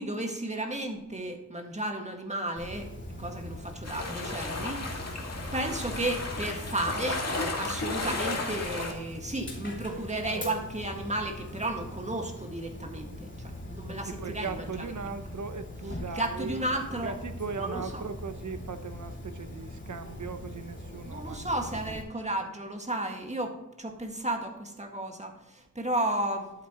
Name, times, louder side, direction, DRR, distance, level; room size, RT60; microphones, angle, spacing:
voice 1, 0.0-2.9 3.2-5.2 5.5-14.8 16.1-17.2 17.6-17.8 21.1-26.5, right 1 dB, 20° right, 3 dB, 1.9 m, -33 dB
Dog, 2.6-22.0, left 1 dB, 35° left, 2.7 m, -41 dB
sound 1, 3.8-8.9, left 2 dB, 50° left, 2.1 m, -34 dB
voice 2, 14.1-21.5 21.9-22.0, right 5 dB, 65° right, 10 dB, 0.9 m, -39 dB
11.5 x 8.6 x 3.0 m, 0.94 s
wide cardioid pair, 75°, 32 cm